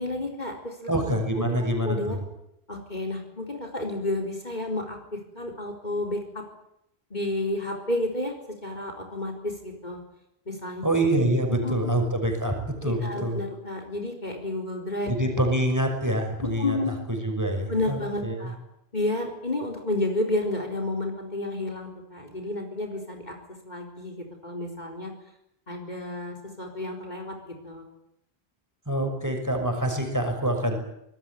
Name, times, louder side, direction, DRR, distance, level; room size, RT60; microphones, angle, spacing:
voice 1, 0.0-0.8 1.1-1.2 1.5-2.2 2.7-5.0 5.3-6.4 7.1-8.3 8.6-10.0 10.5-10.9 11.5-11.7 12.8-15.1 16.6-17.0 17.7-18.5 18.9-23.3 23.6-25.1 25.7-27.8, left 2 dB, 45° left, 4 dB, 4.3 m, -31 dB
voice 2, 0.9-2.2 10.8-13.4 15.1-16.8 17.1-18.5 28.9-30.8, right 1 dB, 15° right, 3 dB, 6.0 m, -26 dB
25.5 x 19.5 x 9.3 m, 0.80 s
omnidirectional pair, 1.1 m